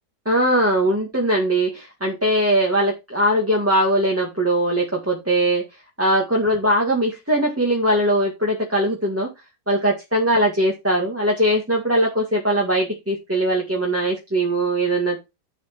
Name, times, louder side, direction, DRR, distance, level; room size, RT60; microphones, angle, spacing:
voice 1, 0.3-5.6 6.0-9.3 9.7-15.2, right 1 dB, 10° right, -2 dB, 1.8 m, -20 dB
11.0 x 4.8 x 4.6 m, 0.24 s
omnidirectional pair, 1.8 m